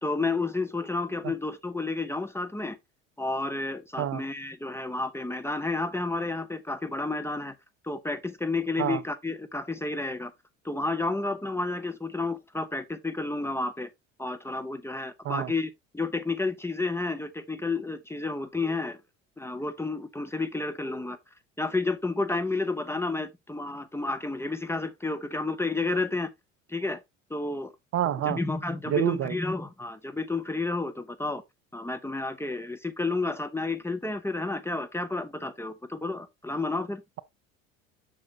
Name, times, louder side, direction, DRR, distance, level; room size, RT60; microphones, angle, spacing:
voice 1, 0.0-2.8 3.2-7.5 7.8-10.3 10.6-13.9 14.2-19.0 19.4-21.2 21.6-26.3 26.7-27.0 27.3-27.7 28.2-31.4 31.7-37.0, left 3 dB, 5° left, 0.7 m, -31 dB
voice 2, 27.9-28.4 28.9-29.3, right 11 dB, 35° right, 0.6 m, -27 dB
7.4 x 6.2 x 2.7 m
figure-of-eight pair, 70°, 40 cm